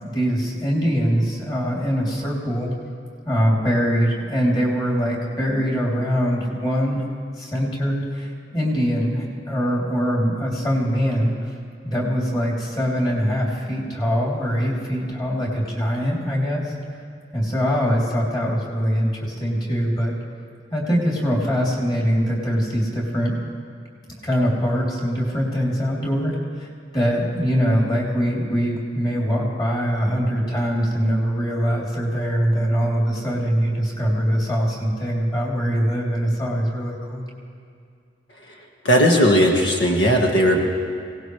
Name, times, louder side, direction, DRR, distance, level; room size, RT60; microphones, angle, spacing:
voice 1, 0.0-2.7 3.2-7.0 7.4-11.5 11.8-17.0 17.3-20.1 20.7-23.4 24.2-37.2, equal, 25° left, -4 dB, 3.2 m, -23 dB
voice 2, 38.8-40.7, equal, 80° left, 0 dB, 1.5 m, -17 dB
25.0 x 18.0 x 3.3 m, 2.2 s
head